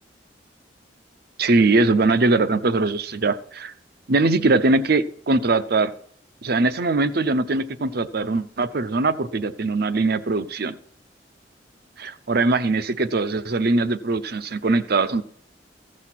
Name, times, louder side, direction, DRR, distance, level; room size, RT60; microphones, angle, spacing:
voice 1, 1.4-3.7 4.1-5.9 6.4-10.8 12.0-15.2, right 3 dB, 60° right, 13 dB, 0.7 m, -21 dB
15.0 x 6.4 x 5.9 m, 0.63 s
head